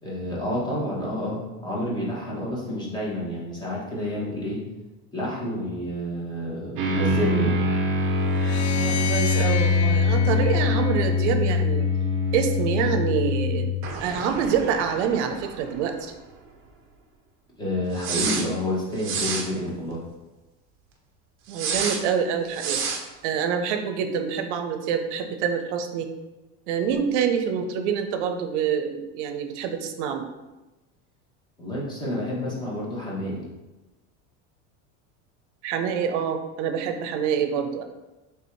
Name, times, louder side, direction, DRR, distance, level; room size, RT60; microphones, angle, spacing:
voice 1, 0.0-4.6 5.1-7.6 17.6-20.0 31.6-33.5, left 1 dB, 15° left, -5 dB, 0.9 m, -29 dB
sound 1, 6.8-15.9 16.2-16.3 18.0-18.4 19.0-19.5 21.5-22.0 22.5-23.0, left 2 dB, 40° right, 0.6 m, -24 dB
sound 2, 8.3-11.6, left 8 dB, 90° left, 0.6 m, -32 dB
voice 2, 8.8-11.9 12.3-13.7 14.0-16.1 21.5-22.8 23.2-26.1 26.7-30.3 35.6-37.8, right 7 dB, 80° right, 6 dB, 0.6 m, -26 dB
3.4 x 2.6 x 4.4 m, 1.1 s
cardioid pair, 160°, 35 cm